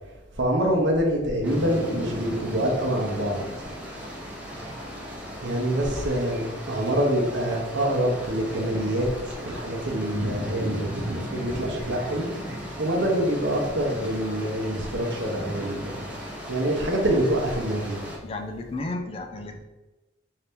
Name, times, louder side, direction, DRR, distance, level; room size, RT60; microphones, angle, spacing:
voice 1, 0.3-3.4 5.4-12.3 12.8-16.0 16.5-18.0, right 1 dB, 70° right, 0 dB, 0.9 m, -26 dB
sound 1, 1.4-18.2, equal, 10° right, 0.7 m, -36 dB
voice 2, 18.2-19.6, left 2 dB, 30° left, 4 dB, 0.4 m, -33 dB
4.0 x 2.8 x 3.5 m, 1.1 s
head